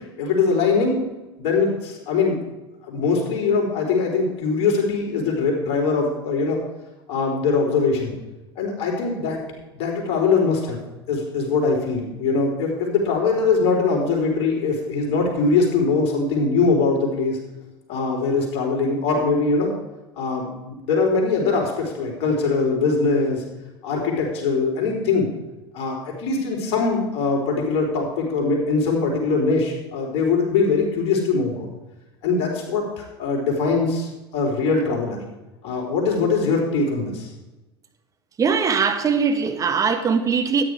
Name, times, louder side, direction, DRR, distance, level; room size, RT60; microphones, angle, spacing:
voice 1, 0.2-1.0 1.4-2.4 2.8-6.6 7.1-8.1 8.6-9.4 9.8-10.8 11.1-17.4 17.9-19.7 20.2-23.4 23.8-25.3 25.7-31.7 32.2-35.2 35.6-37.3, left 4 dB, 50° left, 4.1 m, -22 dB
voice 2, 38.4-40.6, right 6 dB, 25° right, 1.6 m, -21 dB
13.0 x 9.8 x 4.7 m
figure-of-eight pair, 75°, 14 cm